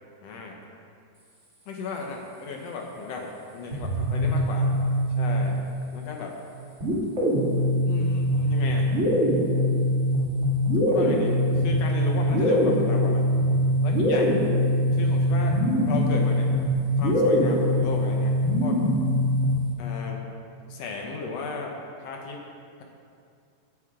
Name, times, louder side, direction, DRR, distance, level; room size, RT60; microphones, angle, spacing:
voice 1, 0.2-0.6 1.7-4.7 5.2-5.6 5.9-6.4 7.8-8.9 10.7-13.2 13.8-14.4 14.9-15.6 15.8-16.5 17.0-18.3 18.6-18.8 19.8-20.2 20.7-21.7 22.0-22.4, left 4 dB, 70° left, 1 dB, 1.5 m, -35 dB
sound 1, 3.7-5.8 6.8-19.7, equal, 25° right, 1.8 m, -23 dB
16.0 x 9.4 x 3.7 m, 2.3 s
omnidirectional pair, 4.2 m